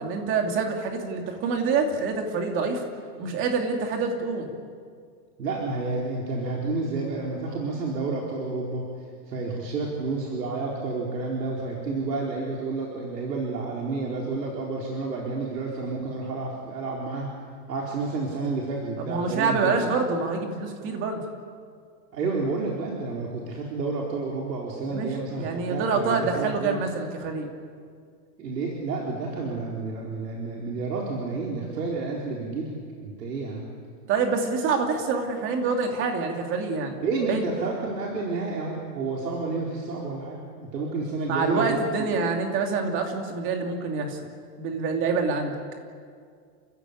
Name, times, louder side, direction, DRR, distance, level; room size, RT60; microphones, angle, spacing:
voice 1, 0.0-2.8 3.2-4.5 19.0-21.2 24.9-25.1 25.4-27.5 34.1-36.9 37.3-37.4 41.3-44.2 44.6-45.6, right 4 dB, 25° right, 3 dB, 2.7 m, -26 dB
voice 2, 5.4-8.9 9.3-17.3 17.7-19.7 22.1-26.8 28.4-32.7 33.0-33.7 37.0-42.1, right 3 dB, 80° right, -2 dB, 4.5 m, -30 dB
28.5 x 15.5 x 8.6 m, 2.1 s
supercardioid pair, 165°, 48 cm